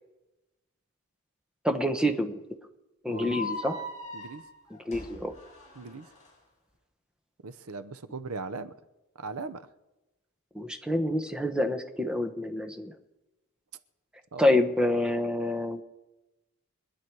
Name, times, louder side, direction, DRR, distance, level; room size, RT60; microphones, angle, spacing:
voice 1, 1.6-2.4 3.0-3.8 4.7-5.3 10.5-12.9 14.4-15.8, left 1 dB, 5° right, 6 dB, 1.0 m, -27 dB
sound 1, 3.1-6.3, left 2 dB, 30° left, 7.0 m, -40 dB
voice 2, 3.1-3.6 4.1-4.4 5.8-6.1 7.4-8.7 9.2-9.6 14.3-14.4, right 4 dB, 85° right, 13 dB, 0.8 m, -39 dB
24.0 x 10.5 x 4.7 m, 1.0 s
head